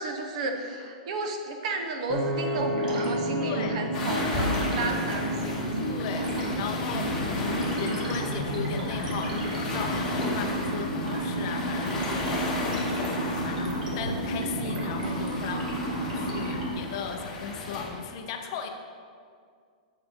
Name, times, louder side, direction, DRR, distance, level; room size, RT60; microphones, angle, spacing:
voice 1, 0.0-5.8, right 3 dB, 50° right, 4 dB, 0.9 m, -32 dB
Piano, 2.1-14.3, equal, 15° right, 1.4 m, -37 dB
sound 1, 2.5-16.7, right 1 dB, 80° right, 2.0 m, -32 dB
voice 2, 3.4-3.8 5.9-6.3 6.6-18.7, left 6 dB, 35° left, 5 dB, 0.6 m, -37 dB
sound 2, 3.9-17.9, left 2 dB, 15° left, 1.3 m, -34 dB
7.8 x 7.4 x 3.6 m, 2.1 s
hypercardioid pair, 170°, 4 cm